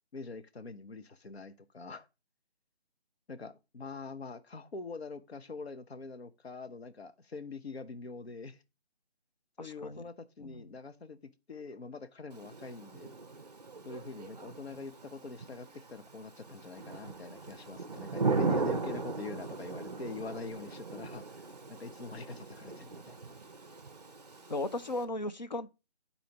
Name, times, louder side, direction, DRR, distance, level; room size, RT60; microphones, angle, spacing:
voice 1, 0.1-2.1 3.3-8.6 9.6-11.2 11.5-13.2 13.8-21.2 21.7-23.3, left 4 dB, 65° left, 0.8 m, -44 dB
voice 2, 9.6-10.1 10.4-10.8 24.5-25.7, left 2 dB, 45° left, 0.4 m, -36 dB
Thunder / Rain, 12.3-25.0, right 4 dB, 40° right, 0.6 m, -38 dB
11.5 x 4.2 x 2.9 m
figure-of-eight pair, 160°, 34 cm